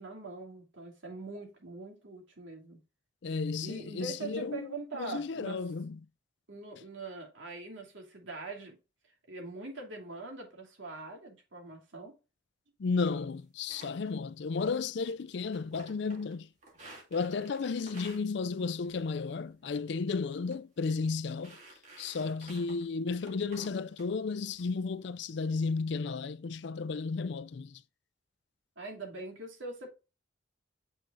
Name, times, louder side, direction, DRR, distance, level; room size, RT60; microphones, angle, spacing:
voice 1, 0.0-2.8 3.6-5.6 6.5-8.8 9.3-12.1 28.8-29.9, right 3 dB, 75° right, 2.8 m, -43 dB
voice 2, 3.2-4.7 5.0-6.0 12.8-16.5 17.1-21.6 22.0-27.8, left 4 dB, 60° left, 0.4 m, -33 dB
sound 1, 13.7-14.1 14.6-15.1 15.4-16.3 16.6-18.2 18.8-19.2 19.5-19.8 20.3-20.5 20.8-20.9 21.3-22.8 23.2-24.1 24.5-24.6 25.0-25.5, right 1 dB, 35° right, 2.4 m, -53 dB
7.6 x 6.1 x 2.5 m
head